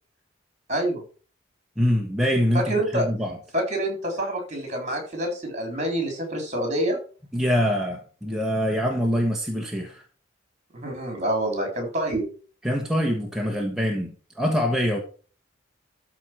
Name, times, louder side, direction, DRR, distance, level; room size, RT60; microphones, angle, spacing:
voice 1, 0.7-1.0 2.5-3.1 3.5-7.0 10.7-12.3, right 1 dB, 35° right, 3 dB, 3.9 m, -27 dB
voice 2, 1.8-3.4 7.3-10.0 12.6-15.0, equal, 5° right, 0 dB, 1.2 m, -24 dB
13.0 x 4.5 x 6.1 m, 0.39 s
head